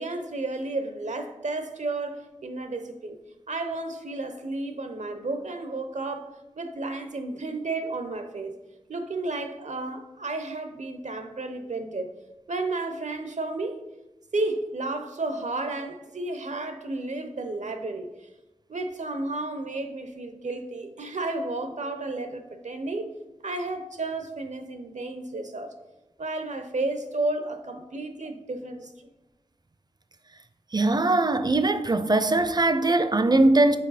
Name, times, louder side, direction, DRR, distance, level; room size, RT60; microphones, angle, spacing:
voice 1, 0.0-3.2 3.5-8.5 8.9-12.1 12.5-13.8 14.3-18.1 18.7-23.1 23.4-25.7 26.2-28.9, right 2 dB, 75° right, 0.7 m, -32 dB
voice 2, 30.7-33.8, right 2 dB, 35° right, 0.5 m, -21 dB
6.3 x 4.7 x 4.1 m
wide cardioid pair, 55°, 12 cm